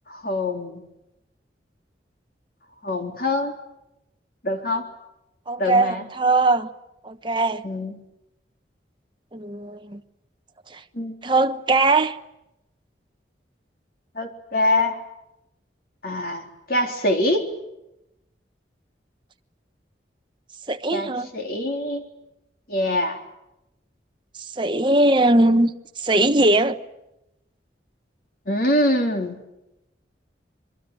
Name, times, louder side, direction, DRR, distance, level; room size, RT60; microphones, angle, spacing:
voice 1, 0.1-0.8 2.8-3.6 4.4-4.9 5.6-6.0 7.6-8.0 10.9-11.1 14.1-15.0 16.0-17.5 20.9-22.0 22.7-23.2 28.5-29.4, left 1 dB, 55° left, 3.7 m, -24 dB
voice 2, 5.5-6.7 7.0-7.6 9.3-10.0 10.7-10.8 11.2-12.2 20.7-21.3 24.4-26.8, right 2 dB, 25° right, 1.1 m, -20 dB
26.5 x 22.5 x 9.0 m
head